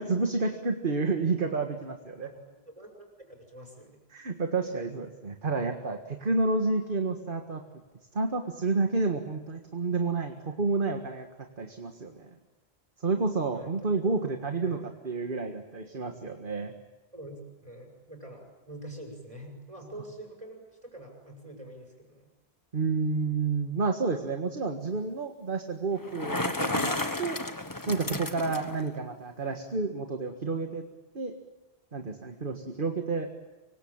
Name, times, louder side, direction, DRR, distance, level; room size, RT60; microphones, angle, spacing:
voice 1, 0.0-2.3 4.1-7.6 8.1-11.3 11.6-12.3 13.0-14.8 15.0-16.7 22.7-27.4 27.9-30.8 31.1-31.4 31.9-33.3, right 3 dB, 55° right, 5 dB, 1.9 m, -30 dB
voice 2, 2.2-4.0 13.5-14.1 14.6-14.8 17.1-22.3, right 1 dB, 30° right, 2 dB, 7.4 m, -46 dB
Bicycle, 26.0-28.8, left 2 dB, 20° left, 1.3 m, -32 dB
26.0 x 24.0 x 8.9 m, 1.1 s
omnidirectional pair, 1.1 m